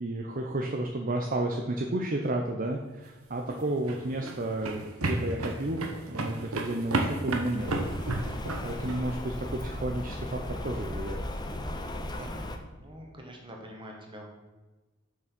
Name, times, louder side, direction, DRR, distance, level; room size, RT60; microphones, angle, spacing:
voice 1, 0.0-5.8 6.1-7.7 8.6-11.3, right 1 dB, 40° right, 2 dB, 0.7 m, -32 dB
sound 1, 3.3-9.0, right 2 dB, 90° right, 1.2 m, -32 dB
Rain, 7.6-12.6, left 1 dB, 20° left, 0.6 m, -36 dB
voice 2, 12.2-14.2, equal, 25° right, 0 dB, 1.7 m, -45 dB
7.1 x 6.3 x 6.0 m, 1.2 s
head